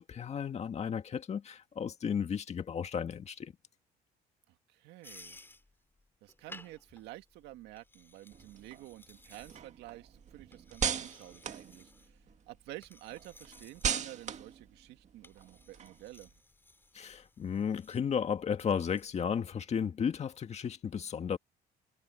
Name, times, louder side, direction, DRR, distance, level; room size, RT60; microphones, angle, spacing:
voice 1, 0.0-3.5 16.9-21.4, left 7 dB, 40° left, 2.0 m, -34 dB
voice 2, 4.5-5.4 6.2-12.2 12.5-16.3, right 16 dB, 90° right, 1.8 m, -50 dB
sound 1, 5.0-19.1, left 2 dB, 15° left, 4.4 m, -58 dB
sound 2, 8.3-12.5 12.8-16.3, right 8 dB, 45° right, 1.9 m, -39 dB
cardioid pair, 110°, 17 cm